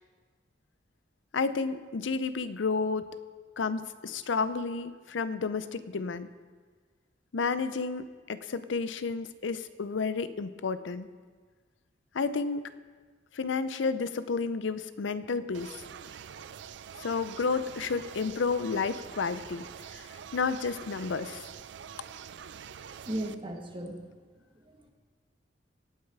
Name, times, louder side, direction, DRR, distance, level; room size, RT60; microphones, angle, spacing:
voice 1, 1.3-3.1 3.6-6.3 7.3-11.1 12.1-12.7 13.3-15.7 17.0-19.7 19.9-20.0 20.3-21.5, left 4 dB, 85° left, 13 dB, 0.5 m, -31 dB
sound 1, 15.5-23.4, right 8 dB, 70° right, 0.4 m, -45 dB
voice 2, 23.0-24.0 24.6-24.9, right 1 dB, 25° right, 2 dB, 1.4 m, -36 dB
18.0 x 6.4 x 4.8 m, 1.5 s
head